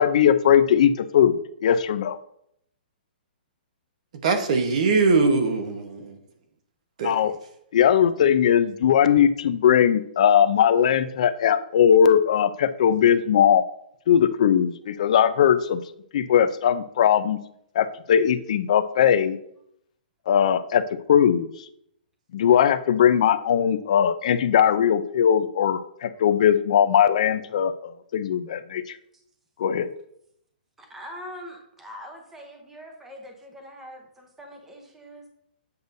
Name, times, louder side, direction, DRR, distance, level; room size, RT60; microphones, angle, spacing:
voice 1, 0.0-2.2 7.0-7.3 7.7-13.6 14.1-15.8 16.1-17.4 17.7-19.4 20.3-20.8 21.1-21.5 22.3-29.0 29.6-29.9, left 8 dB, 40° left, 12 dB, 0.4 m, -19 dB
voice 2, 4.2-6.2 7.0-7.1, right 4 dB, 40° right, 7 dB, 1.0 m, -21 dB
voice 3, 30.8-35.3, equal, 5° right, 2 dB, 0.8 m, -42 dB
8.0 x 6.7 x 2.6 m, 0.72 s
hypercardioid pair, 175°, 5 cm